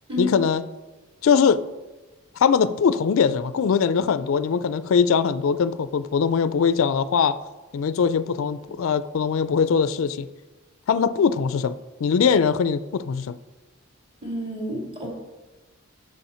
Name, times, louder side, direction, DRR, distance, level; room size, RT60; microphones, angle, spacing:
voice 1, 0.2-0.6 1.2-1.6 2.4-7.4 7.7-10.3 10.9-11.7 12.0-13.4, left 6 dB, 65° left, 0.3 m, -21 dB
voice 2, 14.2-15.1, left 1 dB, 25° right, 2.2 m, -29 dB
8.2 x 6.3 x 4.3 m
head